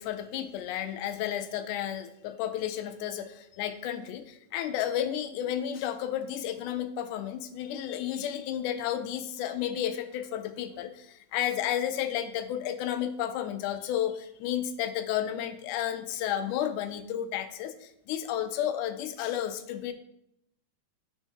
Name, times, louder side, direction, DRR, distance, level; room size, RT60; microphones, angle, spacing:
voice 1, 0.0-19.9, left 10 dB, 85° left, 10 dB, 2.1 m, -32 dB
8.9 x 5.6 x 2.9 m, 0.78 s
omnidirectional pair, 3.5 m